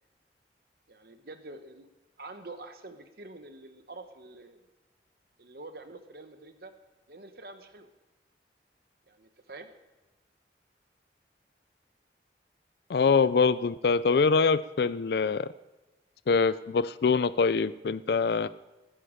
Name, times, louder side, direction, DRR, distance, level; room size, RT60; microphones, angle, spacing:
voice 1, 0.9-1.9 2.2-4.6 5.4-6.7 7.1-7.9 9.1-9.7, right 2 dB, 55° right, 8 dB, 0.9 m, -46 dB
voice 2, 12.9-15.5 16.3-18.5, left 5 dB, 60° left, 15 dB, 0.4 m, -24 dB
20.0 x 10.0 x 5.0 m, 1.1 s
head